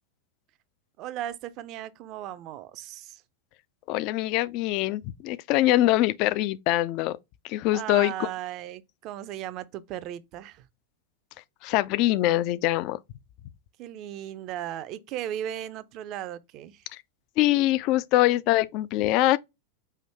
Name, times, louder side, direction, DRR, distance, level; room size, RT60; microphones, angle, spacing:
voice 1, 1.0-3.2 7.7-10.7 13.8-16.8, right 11 dB, 40° right, 0.5 m, -36 dB
voice 2, 3.9-7.2 7.4-8.1 11.6-13.0 17.4-19.4, left 16 dB, 40° left, 0.3 m, -23 dB
5.6 x 2.7 x 3.2 m
figure-of-eight pair, 90°, 0 cm